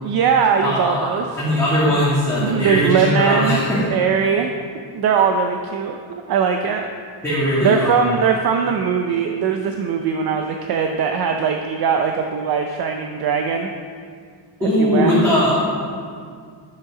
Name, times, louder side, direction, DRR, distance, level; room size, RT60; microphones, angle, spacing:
voice 1, 0.0-1.4 1.9-2.0 2.4-4.5 4.9-6.9 7.6-13.7 14.8-15.1, right 6 dB, 55° right, 4 dB, 0.7 m, -20 dB
voice 2, 0.6-3.8 7.2-8.0 14.6-15.8, left 1 dB, 5° left, -12 dB, 2.5 m, -19 dB
10.5 x 7.7 x 4.9 m, 2.1 s
cardioid pair, 165°, 45 cm